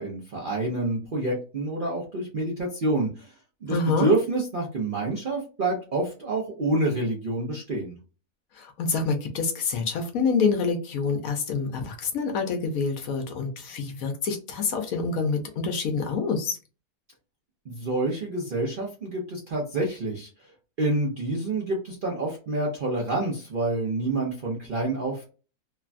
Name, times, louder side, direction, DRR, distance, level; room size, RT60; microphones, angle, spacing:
voice 1, 0.0-3.3 3.6-8.0 17.7-20.3 20.8-25.2, right 2 dB, 55° right, -2 dB, 0.6 m, -27 dB
voice 2, 3.7-4.1 8.5-16.6, left 4 dB, 70° left, 4 dB, 1.0 m, -27 dB
3.1 x 2.2 x 2.4 m, 0.34 s
omnidirectional pair, 1.7 m